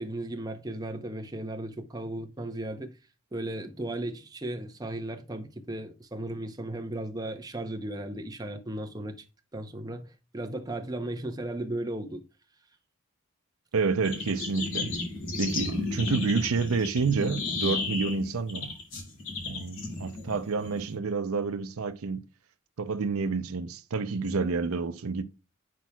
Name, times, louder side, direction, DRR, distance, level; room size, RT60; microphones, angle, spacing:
voice 1, 0.0-2.9 3.3-9.2 9.5-12.2, right 1 dB, 20° right, 0.7 m, -36 dB
voice 2, 13.7-14.9 15.3-18.7 19.4-22.2 22.8-25.2, right 4 dB, 90° right, 0.6 m, -29 dB
sound 1, 14.0-21.0, left 3 dB, 65° left, 2.4 m, -33 dB
8.3 x 5.9 x 2.3 m
head